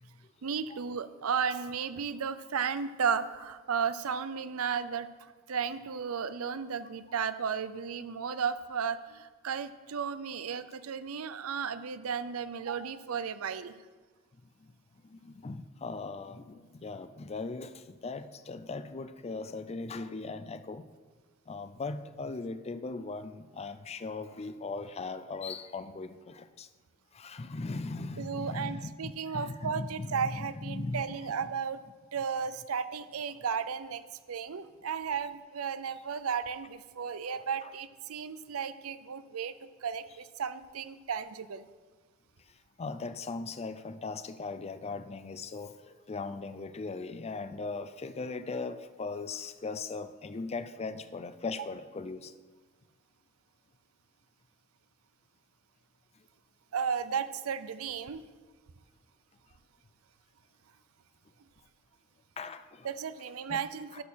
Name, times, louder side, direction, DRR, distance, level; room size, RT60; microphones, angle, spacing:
voice 1, 0.4-13.8 28.2-31.8 32.1-39.5 39.8-41.7 56.7-58.2 62.8-64.0, right 6 dB, 80° right, 0.5 m, -34 dB
voice 2, 15.0-20.9 21.5-26.7 27.1-31.5 37.3-37.7 42.8-52.3 62.4-62.9 63.5-63.6 63.9-64.0, left 3 dB, 30° left, 0.4 m, -39 dB
12.5 x 4.4 x 6.3 m
head